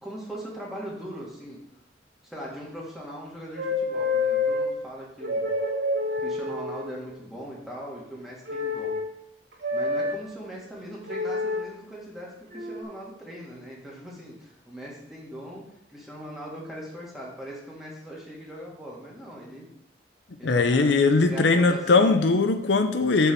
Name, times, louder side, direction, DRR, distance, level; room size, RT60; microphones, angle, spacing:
voice 1, 0.0-1.6 2.2-5.5 6.2-8.9 9.7-19.7 20.4-20.9 21.2-22.2, equal, ahead, -5 dB, 2.0 m, -40 dB
sound 1, 3.5-4.7 5.2-6.9 8.5-9.0 9.6-10.2 11.1-11.6 12.5-12.8, left 3 dB, 75° right, 3.1 m, -27 dB
voice 2, 20.4-23.3, left 3 dB, 75° left, 7 dB, 0.6 m, -20 dB
7.0 x 4.6 x 6.8 m, 0.81 s
head